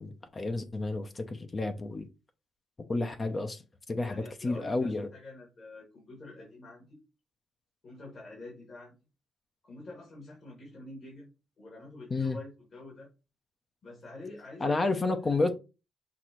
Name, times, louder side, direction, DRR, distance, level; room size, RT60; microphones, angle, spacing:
voice 1, 0.0-2.1 2.9-3.6 3.9-4.2 4.4-5.1 12.1-12.4 14.6-15.5, left 3 dB, 30° left, 0.6 m, -30 dB
voice 2, 4.0-7.0 7.8-8.9 9.6-11.3 11.6-13.1 13.8-15.0 15.2-15.4, left 2 dB, 50° left, 1.9 m, -47 dB
5.9 x 2.5 x 3.0 m
cardioid pair, 90°, 0 cm